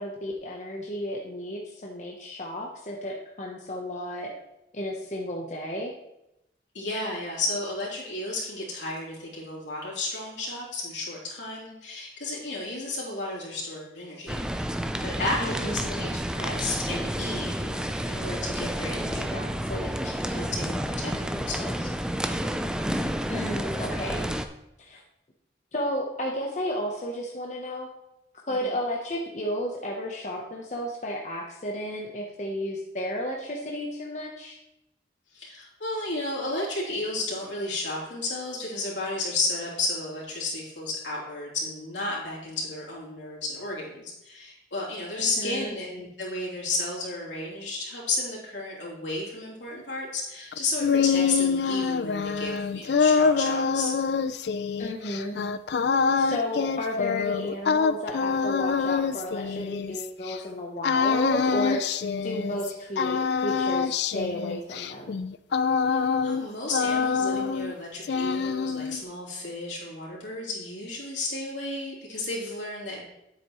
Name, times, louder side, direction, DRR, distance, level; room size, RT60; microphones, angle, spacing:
voice 1, 0.0-4.3 4.7-5.9 15.4-15.9 23.3-24.3 24.8-25.0 25.7-27.9 28.5-34.6 45.1-45.7 54.8-55.4 56.2-61.8 62.2-65.2, left 1 dB, 40° left, -1 dB, 0.9 m, -33 dB
voice 2, 6.7-14.7 15.0-21.9 28.5-28.8 35.3-53.9 65.9-73.0, left 2 dB, 90° left, -5 dB, 3.3 m, -33 dB
sound 1, 14.3-24.5, equal, 5° right, 0.3 m, -30 dB
sound 2, 50.5-60.4 60.8-62.7 63.0-66.5 66.7-67.7 68.0-69.0, left 5 dB, 70° left, 0.4 m, -25 dB
9.4 x 8.1 x 3.1 m, 0.87 s
head